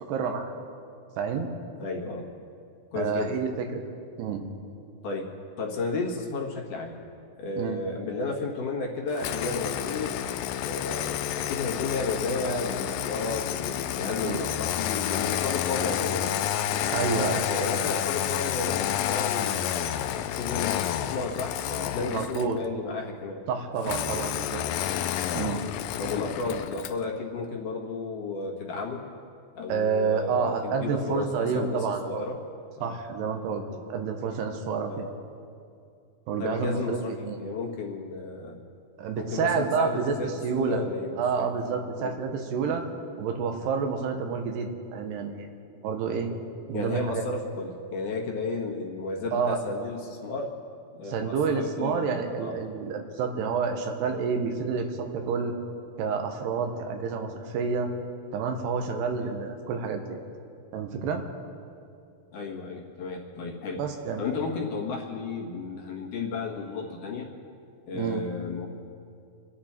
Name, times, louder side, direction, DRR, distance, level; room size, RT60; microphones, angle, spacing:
voice 1, 0.1-0.5 1.2-1.5 3.0-3.8 4.2-4.4 7.6-7.8 14.2-14.4 16.9-17.4 22.1-22.6 23.5-24.6 25.4-25.6 29.7-32.2 32.8-33.6 33.9-35.1 36.3-37.4 39.0-40.1 40.4-40.8 41.2-42.8 43.2-45.5 45.8-46.3 46.7-47.2 49.3-49.6 51.1-55.5 56.0-57.9 58.3-60.2 60.7-61.2 63.8-64.2 67.9-68.2, right 5 dB, 90° right, 4 dB, 3.2 m, -29 dB
voice 2, 1.8-2.3 2.9-3.4 5.0-5.3 5.6-7.0 7.4-10.2 10.5-16.4 17.2-23.4 25.2-25.5 26.0-29.1 29.6-32.4 32.8-32.9 33.7-33.8 34.9-35.0 36.4-38.6 39.1-41.5 42.0-42.1 46.7-50.5 50.9-52.6 59.1-59.3 62.3-63.8 64.2-67.3 67.9-68.7, left 3 dB, 60° left, 0 dB, 2.9 m, -33 dB
Engine starting, 9.2-22.6 23.8-27.0, left 11 dB, 85° left, 2.0 m, -30 dB
27.0 x 11.0 x 4.4 m, 2.4 s
omnidirectional pair, 4.6 m